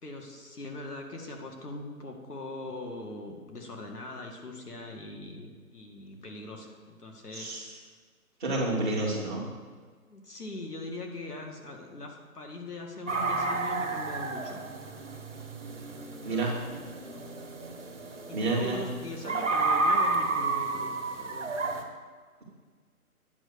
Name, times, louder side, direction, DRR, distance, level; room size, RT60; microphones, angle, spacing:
voice 1, 0.0-7.9 9.0-9.2 10.1-14.7 16.0-16.6 17.0-17.2 18.3-21.5, left 2 dB, 90° left, 2 dB, 2.1 m, -41 dB
voice 2, 7.3-7.8 8.4-9.4 16.2-16.6 18.3-18.8, right 2 dB, ahead, -21 dB, 1.5 m, -29 dB
sound 1, 13.1-21.8, right 3 dB, 50° right, 1.4 m, -31 dB
9.8 x 5.3 x 6.9 m, 1.5 s
hypercardioid pair, 175°, 45 cm